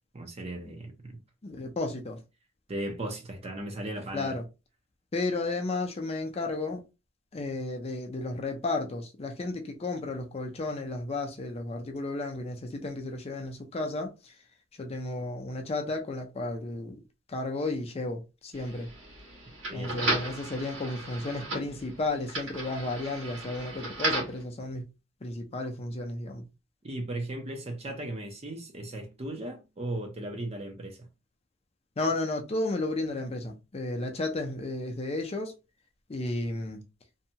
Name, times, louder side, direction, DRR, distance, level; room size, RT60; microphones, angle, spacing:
voice 1, 0.1-1.2 2.7-4.4 19.7-20.0 26.8-31.1, right 1 dB, 30° right, 0.6 m, -37 dB
voice 2, 1.4-2.2 4.1-4.4 5.1-6.8 7.3-14.3 14.8-17.0 17.3-18.9 19.7-24.9 25.2-26.5 32.0-35.5 36.1-36.8, left 2 dB, 30° left, 0.5 m, -33 dB
sound 1, 18.5-24.4, right 2 dB, 70° right, 1.4 m, -35 dB
2.7 x 2.2 x 2.7 m
head